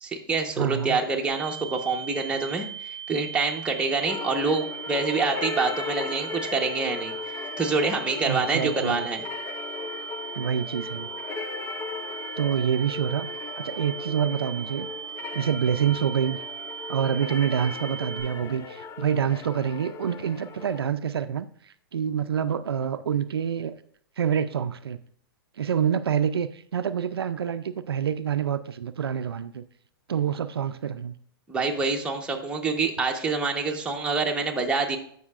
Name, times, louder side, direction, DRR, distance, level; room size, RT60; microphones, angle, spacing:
voice 1, 0.0-9.2 31.5-35.0, right 4 dB, 10° right, 0 dB, 1.1 m, -26 dB
voice 2, 0.6-1.0 8.3-9.1 10.4-11.1 12.4-13.3 13.6-14.9 15.3-16.4 16.9-23.8 24.2-25.0 25.6-29.6 30.1-31.1, right 8 dB, 85° right, 11 dB, 0.4 m, -27 dB
sound 1, 1.3-18.2, right 8 dB, 55° left, 3.4 m, -38 dB
sound 2, 4.1-20.9, left 6 dB, 20° left, 0.5 m, -37 dB
14.5 x 5.6 x 2.5 m, 0.63 s
hypercardioid pair, 130°, 12 cm